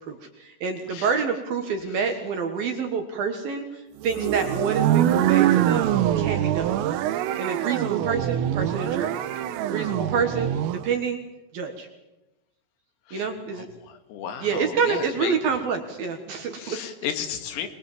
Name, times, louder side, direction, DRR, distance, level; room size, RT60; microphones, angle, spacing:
voice 1, 0.0-6.8 7.4-9.2 9.7-11.2 11.5-11.9 13.1-13.7 14.4-16.8, right 5 dB, 60° right, 5 dB, 2.8 m, -28 dB
sound 1, 4.0-10.9, right 11 dB, 90° right, 3.7 m, -24 dB
voice 2, 13.1-15.4 16.6-17.7, left 8 dB, 85° left, 7 dB, 4.6 m, -34 dB
23.0 x 22.5 x 7.4 m, 0.98 s
omnidirectional pair, 5.8 m